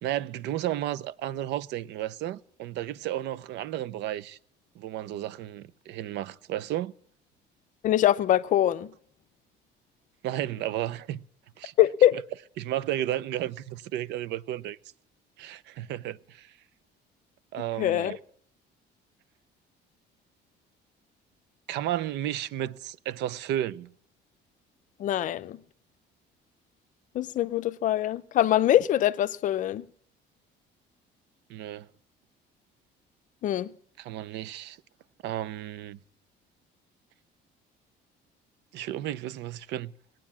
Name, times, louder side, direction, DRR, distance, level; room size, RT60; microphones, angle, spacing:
voice 1, 0.0-4.4 4.8-6.9 10.2-11.2 11.6-11.7 12.6-14.8 15.4-16.5 17.5-18.2 21.7-23.9 31.5-31.9 34.0-34.8 35.2-36.0 38.7-39.9, right 13 dB, 70° right, 0.6 m, -33 dB
voice 2, 7.8-8.9 11.8-12.2 17.8-18.2 25.0-25.6 27.1-29.8 33.4-33.7, left 12 dB, 45° left, 0.6 m, -23 dB
19.5 x 9.1 x 7.3 m
cardioid pair, 170°, 19 cm